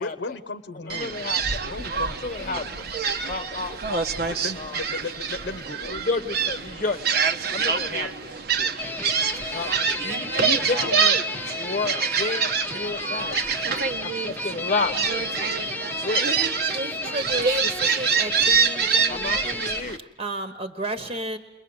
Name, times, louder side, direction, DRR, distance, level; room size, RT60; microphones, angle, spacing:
voice 1, 0.0-1.3 1.6-2.9 4.3-6.3, left 3 dB, 70° left, 10 dB, 0.9 m, -36 dB
voice 2, 0.9-1.6 2.2-2.6 3.2-4.8 5.8-7.1 7.5-8.3 8.5-8.8 9.5-9.7 10.0-11.2 11.6-13.4 14.0-15.5 16.0-16.3 19.1-20.0, left 3 dB, 40° left, 9 dB, 0.9 m, -31 dB
Gull seagull, 0.9-20.0, right 6 dB, 60° right, 1.1 m, -26 dB
sound 1, 8.8-19.8, left 2 dB, 10° left, 0.8 m, -32 dB
voice 3, 16.6-19.7 20.0-21.4, right 2 dB, 35° right, 8 dB, 1.3 m, -33 dB
29.5 x 22.5 x 8.0 m, 1.1 s
head